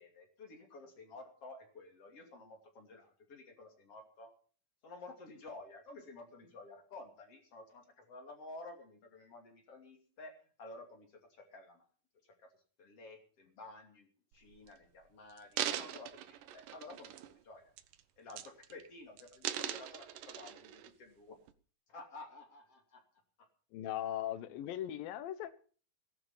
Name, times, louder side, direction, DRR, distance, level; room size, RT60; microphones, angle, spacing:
voice 1, 0.0-4.3 4.8-11.8 12.8-17.7 18.2-21.4 21.9-23.0, left 2 dB, 45° left, 3 dB, 3.5 m, -52 dB
sound 1, 14.3-14.7 15.3-17.4 17.8-18.0 18.3-18.9 19.2-20.9 21.5-21.6, right 11 dB, 75° right, 2.4 m, -41 dB
voice 2, 23.7-25.6, left 12 dB, 80° left, 14 dB, 2.7 m, -39 dB
18.0 x 11.0 x 5.6 m, 0.43 s
omnidirectional pair, 4.0 m